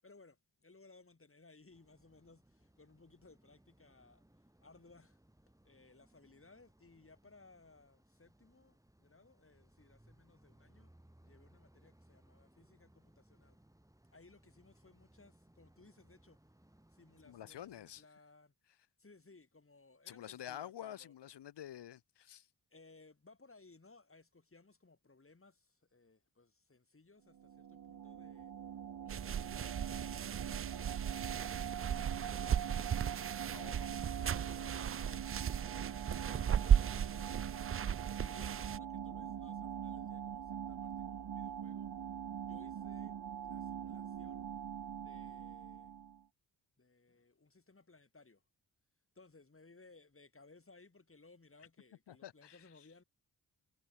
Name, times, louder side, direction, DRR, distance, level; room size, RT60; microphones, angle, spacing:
voice 1, 0.0-5.2 5.6-10.9 11.2-13.6 14.1-16.4 16.9-18.5 19.0-21.1 22.7-28.5 29.0-33.2 33.8-35.3 35.8-41.9 42.4-43.2 43.4-44.4 45.0-45.9 46.8-48.4 49.1-53.0, left 3 dB, 30° left, 7.7 m, -63 dB
sound 1, 1.7-18.0, right 1 dB, 10° right, 4.4 m, -67 dB
voice 2, 17.2-18.0 20.1-22.5 33.5-33.9 34.2-34.4 52.1-52.6, left 11 dB, 90° left, 1.8 m, -49 dB
sound 2, 27.3-46.2, right 9 dB, 65° right, 1.4 m, -43 dB
sound 3, 29.1-38.8, right 8 dB, 35° right, 0.4 m, -35 dB
cardioid pair, 65°, 40 cm